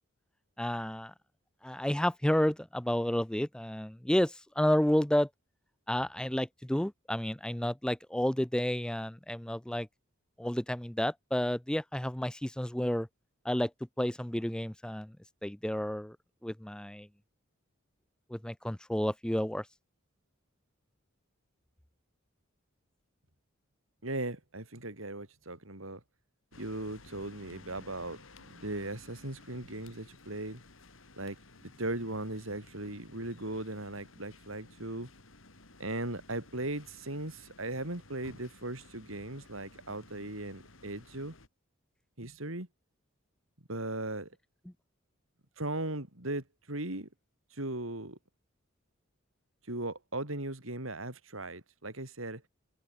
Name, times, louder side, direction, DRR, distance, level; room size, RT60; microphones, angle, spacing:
voice 1, 0.6-1.1 1.6-5.3 5.9-9.9 10.4-13.1 13.4-13.7 14.0-15.2 15.4-16.2 16.4-17.1 18.3-19.7, left 1 dB, 5° left, 0.4 m, -31 dB
voice 2, 24.0-26.0 26.6-28.2 28.5-30.6 31.2-35.1 35.8-41.3 42.2-42.7 43.7-44.3 45.6-47.1 47.5-48.2 49.7-52.4, right 2 dB, 80° right, 4.9 m, -38 dB
sound 1, 26.5-41.5, left 2 dB, 70° left, 3.7 m, -56 dB
head